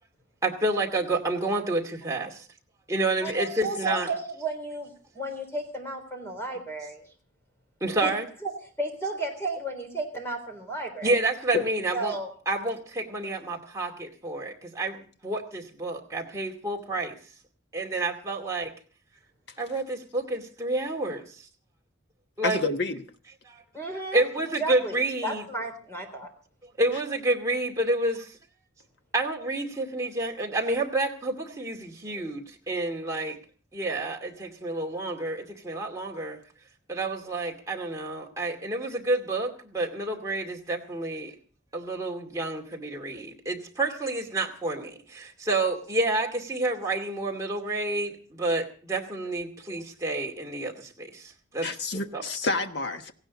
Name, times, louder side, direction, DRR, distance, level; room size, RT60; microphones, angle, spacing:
voice 1, 0.4-2.4 2.9-4.1 7.8-8.3 11.0-12.2 12.5-17.2 17.7-18.7 19.6-21.5 22.4-22.6 23.5-23.6 24.1-25.4 26.8-28.4 29.1-33.4 33.7-36.4 36.9-41.3 41.7-52.2, right 2 dB, 15° right, 2.4 m, -29 dB
voice 2, 3.2-7.1 8.0-8.1 8.4-8.5 8.8-11.2 11.9-12.3 23.7-24.2 24.6-25.0 25.2-26.3, right 2 dB, 10° left, 3.8 m, -33 dB
voice 3, 22.4-23.0 51.6-53.1, left 3 dB, 55° left, 1.3 m, -28 dB
18.0 x 16.0 x 4.1 m
head